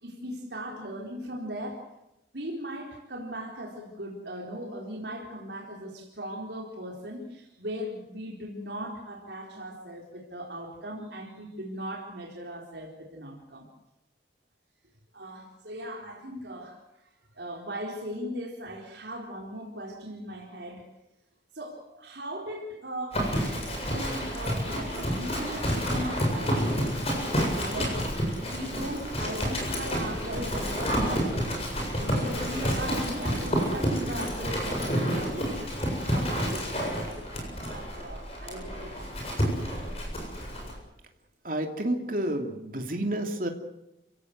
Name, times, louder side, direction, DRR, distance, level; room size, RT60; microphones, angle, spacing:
voice 1, 0.0-1.9 2.3-13.7 15.1-20.9 21.5-27.0 27.6-28.1 28.4-35.7 36.1-39.1 40.6-40.8, equal, 75° right, 0 dB, 4.1 m, -38 dB
Livestock farm animals working animals, 23.1-40.7, equal, 35° left, 7.6 m, -29 dB
voice 2, 41.4-43.5, right 1 dB, 50° right, 4 dB, 2.9 m, -30 dB
29.0 x 17.0 x 8.1 m, 0.88 s
head